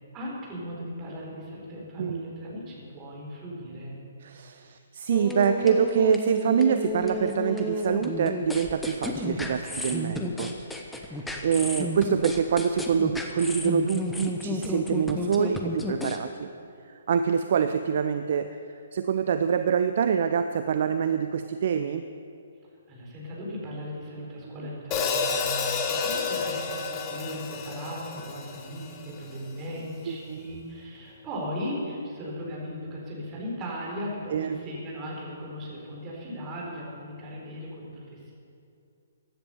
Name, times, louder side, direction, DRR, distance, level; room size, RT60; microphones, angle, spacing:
voice 1, 0.1-4.0 22.9-38.3, equal, 20° right, -4 dB, 4.2 m, -37 dB
voice 2, 4.2-10.6 10.9-16.5 17.1-18.6 18.9-22.1 30.1-30.4 34.3-34.6, right 7 dB, 45° right, 9 dB, 0.5 m, -25 dB
sound 1, 5.1-16.2, left 1 dB, 5° left, 1.1 m, -32 dB
Hi-hat, 24.9-29.2, left 5 dB, 25° left, 1.2 m, -30 dB
15.5 x 10.5 x 6.9 m, 2.5 s
figure-of-eight pair, 130°, 0 cm